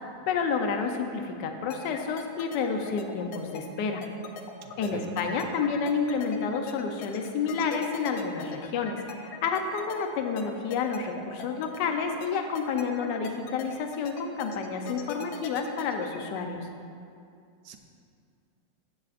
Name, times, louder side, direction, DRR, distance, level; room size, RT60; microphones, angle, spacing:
voice 1, 0.3-4.0 4.8-16.7, left 5 dB, 65° left, 4 dB, 1.2 m, -30 dB
sound 1, 1.7-16.4, left 6 dB, 80° left, 1.5 m, -41 dB
voice 2, 4.6-5.3 17.7-17.8, right 7 dB, 70° right, 4 dB, 1.0 m, -41 dB
14.0 x 7.6 x 2.5 m, 2.4 s
omnidirectional pair, 2.3 m